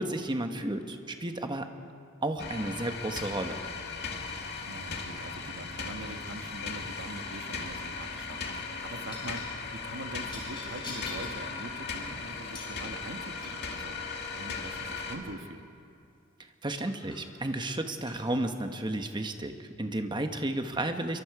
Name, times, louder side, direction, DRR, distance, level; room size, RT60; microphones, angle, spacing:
voice 1, 0.0-1.7 2.2-3.6 16.6-21.2, right 1 dB, 20° right, 6 dB, 1.2 m, -32 dB
sound 1, 2.4-15.2, left 4 dB, 50° left, 2.3 m, -37 dB
voice 2, 4.7-13.9 14.3-15.7, right 2 dB, 65° right, 6 dB, 1.4 m, -43 dB
sound 2, 7.2-7.5 9.1-9.5 10.2-11.4 12.5-12.8 13.4-13.7 16.1-16.2 16.8-17.2 17.9-18.2, left 2 dB, 25° left, 4.8 m, -44 dB
27.0 x 23.5 x 4.9 m, 2.5 s
head